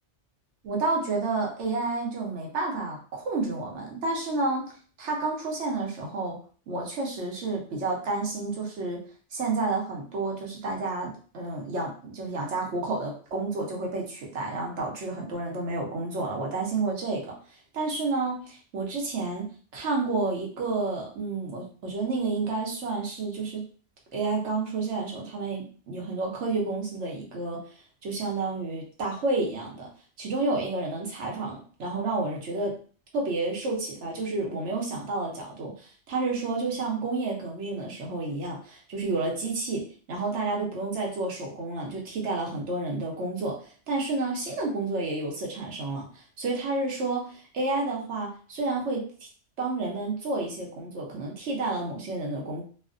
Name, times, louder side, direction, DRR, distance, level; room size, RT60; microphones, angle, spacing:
voice 1, 0.6-6.4 6.7-9.1 9.3-17.4 17.7-23.7 24.1-27.6 28.0-29.9 30.2-32.8 33.1-46.1 46.4-49.1 49.6-52.6, right 3 dB, 75° right, -1 dB, 1.1 m, -30 dB
3.2 x 2.1 x 2.5 m, 0.41 s
omnidirectional pair, 1.2 m